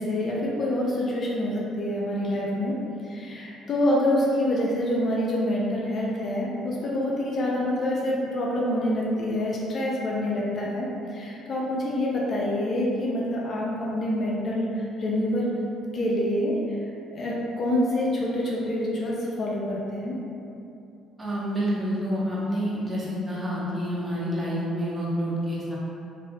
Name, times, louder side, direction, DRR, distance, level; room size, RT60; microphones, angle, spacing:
voice 1, 0.0-2.7 3.0-15.5 15.9-16.5 17.1-20.2, left 1 dB, 50° left, -4 dB, 0.5 m, -26 dB
voice 2, 21.2-25.8, equal, 20° right, -7 dB, 0.9 m, -28 dB
3.2 x 2.5 x 2.3 m, 2.7 s
supercardioid pair, 70°, 0 cm